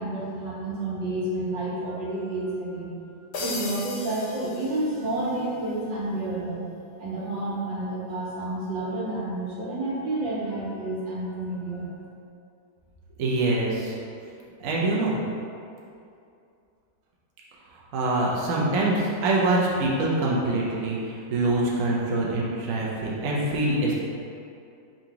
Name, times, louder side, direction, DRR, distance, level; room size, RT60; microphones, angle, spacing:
voice 1, 0.0-2.9 3.4-6.7 7.0-11.9, right 2 dB, 85° right, -7 dB, 1.8 m, -30 dB
sound 1, 3.3-5.4, left 2 dB, 70° left, 1.0 m, -36 dB
voice 2, 13.2-14.0 14.6-15.2 17.9-23.9, right 2 dB, 60° right, -5 dB, 0.9 m, -24 dB
3.8 x 2.9 x 4.6 m, 2.5 s
omnidirectional pair, 2.0 m